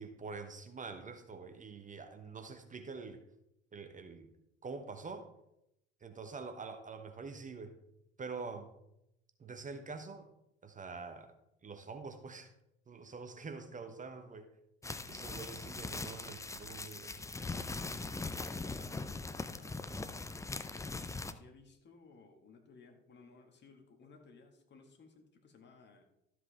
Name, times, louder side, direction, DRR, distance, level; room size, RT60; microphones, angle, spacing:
voice 1, 0.0-3.2 3.7-4.3 4.6-5.3 6.0-7.7 8.2-8.7 9.4-10.3 10.6-11.3 11.6-12.5 12.9-14.5 15.1-17.1, right 4 dB, 25° right, 8 dB, 1.1 m, -45 dB
sound 1, 14.8-21.3, left 3 dB, 10° left, 0.6 m, -41 dB
voice 2, 18.6-20.1 21.3-26.0, left 4 dB, 35° left, 4 dB, 2.0 m, -59 dB
13.0 x 7.5 x 3.5 m, 0.82 s
figure-of-eight pair, 55°, 29 cm